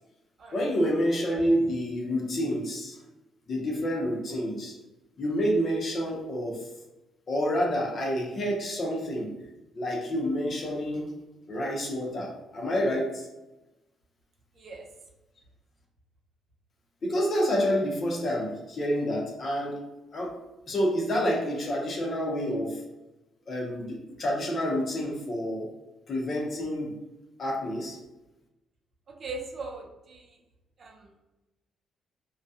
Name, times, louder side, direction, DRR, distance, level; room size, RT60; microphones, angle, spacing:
voice 1, 0.5-3.0 3.5-4.7 5.2-6.7 7.3-9.3 9.8-11.1 11.5-13.3 17.0-19.8 20.1-20.4 20.7-22.8 23.5-25.7 26.1-26.9 27.4-28.0, equal, 45° left, -1 dB, 0.7 m, -28 dB
voice 2, 14.6-14.9 29.2-30.4 30.8-31.2, right 3 dB, 50° right, 0 dB, 0.5 m, -40 dB
2.2 x 2.2 x 2.7 m, 1.0 s
cardioid pair, 90°, 0 cm